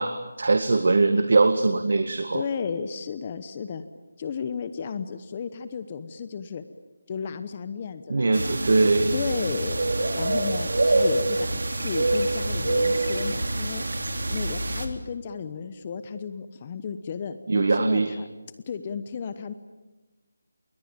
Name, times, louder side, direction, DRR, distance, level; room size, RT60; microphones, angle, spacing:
voice 1, 0.0-2.4 8.1-9.1 17.5-18.1, right 3 dB, 60° right, 8 dB, 1.9 m, -21 dB
voice 2, 2.3-3.8 4.2-6.6 7.1-8.6 9.1-9.8 10.1-13.9 14.3-18.3 18.7-19.5, left 6 dB, 25° left, 11 dB, 1.0 m, -33 dB
sound 1, 8.3-14.9, right 2 dB, 75° right, 3.6 m, -25 dB
27.5 x 22.5 x 8.9 m, 1.1 s
figure-of-eight pair, 170°, 0 cm